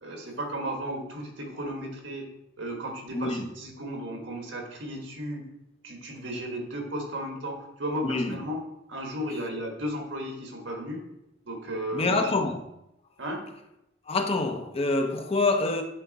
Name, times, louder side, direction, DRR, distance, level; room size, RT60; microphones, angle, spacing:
voice 1, 0.0-2.3 2.6-5.4 5.8-8.6 8.9-11.0 11.4-12.3 13.2-13.4, equal, 75° right, 1.4 m, -34 dB
voice 2, 3.1-3.5 8.0-8.4 11.9-12.6 14.1-15.8, left 3 dB, 30° left, 0.6 m, -26 dB
8.3 x 3.6 x 4.0 m
head